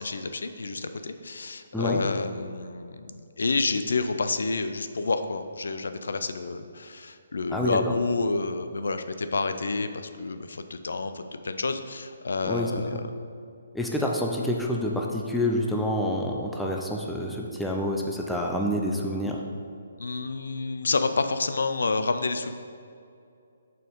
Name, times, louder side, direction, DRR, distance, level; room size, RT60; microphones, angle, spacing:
voice 1, 0.0-13.0 20.0-22.6, left 3 dB, 80° left, 9 dB, 0.5 m, -29 dB
voice 2, 12.4-13.0 13.7-19.4, left 1 dB, ahead, -1 dB, 0.4 m, -28 dB
6.3 x 4.6 x 5.1 m, 2.5 s
hypercardioid pair, 170°, 0 cm